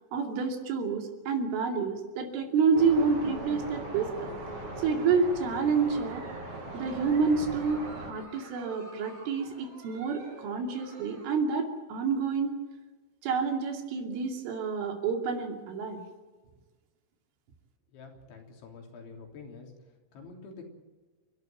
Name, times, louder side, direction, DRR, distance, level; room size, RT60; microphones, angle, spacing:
voice 1, 0.1-4.3 4.8-6.3 6.7-12.6 13.2-16.0, right 5 dB, 85° right, 4 dB, 5.2 m, -28 dB
sound 1, 2.7-8.1, right 1 dB, 30° right, 6.1 m, -39 dB
Giggle, 4.7-11.4, right 2 dB, 50° right, 7.3 m, -51 dB
voice 2, 17.9-19.7 20.1-20.6, left 4 dB, 70° left, 2 dB, 5.7 m, -47 dB
29.5 x 12.0 x 9.2 m, 1.3 s
omnidirectional pair, 5.5 m